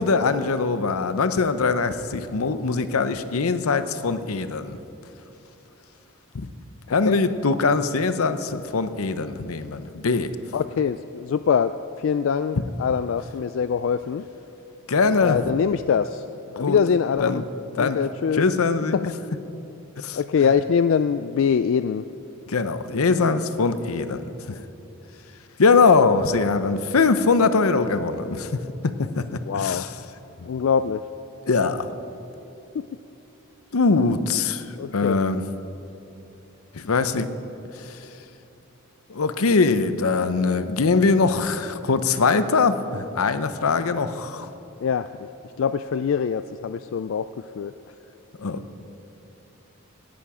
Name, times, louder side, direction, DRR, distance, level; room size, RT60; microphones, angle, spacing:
voice 1, 0.0-4.8 6.3-6.5 6.9-10.3 14.9-15.4 16.6-16.8 17.2-17.4 17.7-18.0 18.3-19.1 20.0-20.2 22.5-24.2 25.6-29.9 31.5-31.9 33.7-34.6 34.9-35.4 36.7-37.3 37.8-38.0 39.1-44.5 48.4-48.8, left 4 dB, 80° left, 11 dB, 0.7 m, -22 dB
voice 2, 10.5-14.2 15.2-16.2 16.5-17.4 17.8-18.4 18.9-19.0 20.1-22.0 29.4-29.8 30.5-31.0 32.7-32.8 34.8-35.2 44.8-45.3 45.6-47.3 47.6-47.7, left 7 dB, 60° left, 11 dB, 0.3 m, -23 dB
17.5 x 11.5 x 4.9 m, 2.9 s
head